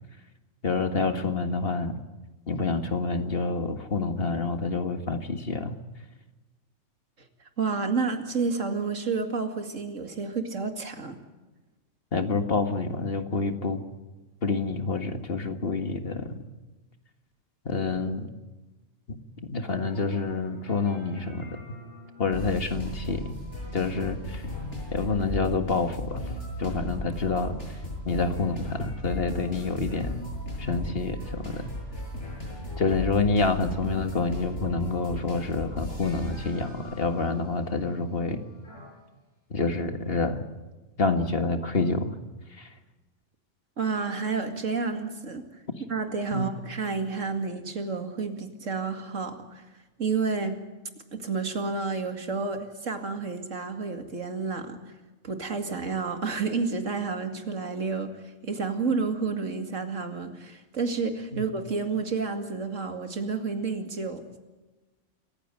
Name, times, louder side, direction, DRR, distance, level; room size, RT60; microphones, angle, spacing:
voice 1, 0.6-1.9 2.5-5.8 12.1-13.8 14.4-16.4 17.7-18.3 19.1-21.6 22.2-23.4 23.7-24.4 24.9-26.3 26.6-27.6 28.1-30.2 30.6-31.7 32.8-38.4 39.5-40.4 41.0-42.1 42.6-42.7 46.3-46.5 61.3-61.4, left 3 dB, 50° left, 8 dB, 2.0 m, -28 dB
voice 2, 7.6-11.2 43.8-45.5 45.9-49.6 50.0-50.6 51.1-54.8 55.2-58.1 58.4-64.3, right 4 dB, 85° right, 6 dB, 2.7 m, -30 dB
sound 1, 19.7-38.9, left 1 dB, 65° left, 7.7 m, -37 dB
26.5 x 15.5 x 9.3 m, 1.2 s
omnidirectional pair, 1.3 m